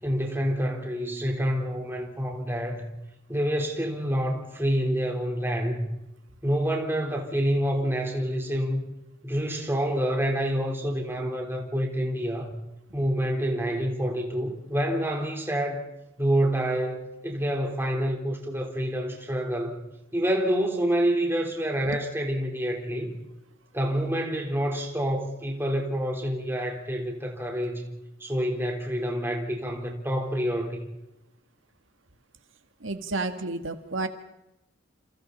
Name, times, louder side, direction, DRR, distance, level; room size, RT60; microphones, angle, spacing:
voice 1, 0.0-2.8 3.3-5.9 6.4-8.8 9.2-12.5 12.9-15.8 16.2-19.8 20.1-23.2 23.7-27.9 28.2-30.9, equal, 10° right, 4.2 m, -27 dB
voice 2, 32.8-34.1, right 3 dB, 80° right, 1.9 m, -31 dB
29.0 x 28.5 x 4.3 m
head